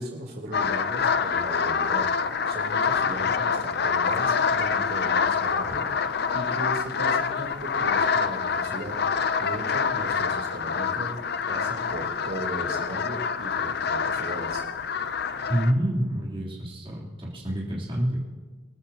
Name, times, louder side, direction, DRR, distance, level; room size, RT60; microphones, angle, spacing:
voice 1, 0.0-14.6, right 1 dB, 55° right, 0 dB, 3.5 m, -37 dB
sound 1, 0.5-15.7, left 6 dB, 60° left, 0.6 m, -26 dB
voice 2, 15.5-18.3, equal, 30° right, -6 dB, 3.5 m, -27 dB
25.0 x 13.0 x 3.0 m, 1.3 s
head